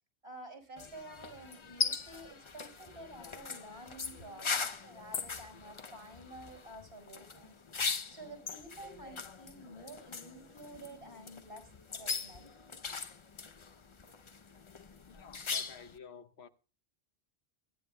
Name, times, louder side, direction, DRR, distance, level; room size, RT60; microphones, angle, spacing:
voice 1, 0.2-7.5 7.8-12.5, right 1 dB, 70° right, 5.2 m, -50 dB
sound 1, 0.8-16.0, left 5 dB, 35° left, 0.6 m, -40 dB
voice 2, 15.1-16.5, left 6 dB, 75° left, 1.2 m, -52 dB
22.5 x 12.0 x 2.2 m
omnidirectional pair, 1.1 m